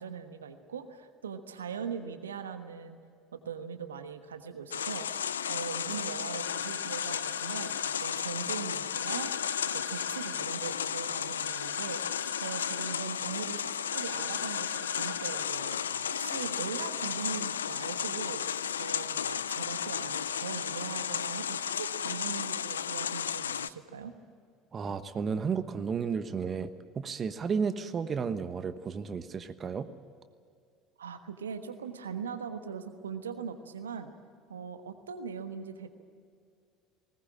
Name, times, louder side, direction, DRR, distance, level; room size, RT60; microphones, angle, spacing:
voice 1, 0.0-3.0 3.3-5.1 5.5-9.3 9.7-15.8 16.1-18.4 18.8-24.1 31.0-34.1 34.5-35.9, right 6 dB, 80° right, 8 dB, 1.3 m, -40 dB
sound 1, 4.7-23.7, left 8 dB, 80° left, 0.4 m, -33 dB
sound 2, 6.4-7.9 8.9-10.4 11.4-12.9 13.9-15.4, left 1 dB, 10° left, 2.0 m, -48 dB
voice 2, 24.7-29.9, right 6 dB, 35° right, 11 dB, 1.2 m, -33 dB
20.0 x 19.0 x 8.7 m, 2.3 s
figure-of-eight pair, 65°, 0 cm